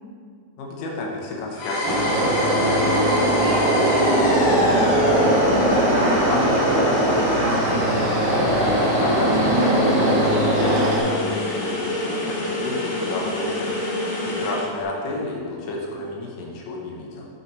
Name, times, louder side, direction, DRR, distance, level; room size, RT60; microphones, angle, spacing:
voice 1, 0.6-3.5 6.3-7.4 8.9-13.9 14.2-17.3, left 2 dB, 90° left, -2 dB, 2.6 m, -31 dB
sound 1, 1.5-14.7, left 2 dB, 70° left, 1.4 m, -28 dB
sound 2, 1.8-11.0, right 1 dB, 60° right, 1.8 m, -20 dB
voice 2, 3.3-8.3, right 1 dB, 75° right, -4 dB, 1.6 m, -32 dB
8.7 x 5.9 x 3.1 m, 2.2 s
omnidirectional pair, 3.7 m